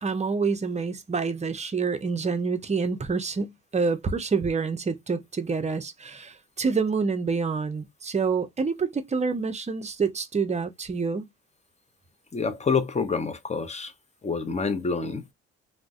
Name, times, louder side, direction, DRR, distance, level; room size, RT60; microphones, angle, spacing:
voice 1, 0.0-11.3, right 5 dB, 25° right, 0.5 m, -27 dB
voice 2, 12.3-13.9 14.2-15.3, left 5 dB, 25° left, 0.6 m, -27 dB
2.5 x 2.1 x 3.4 m
cardioid pair, 90°, 30 cm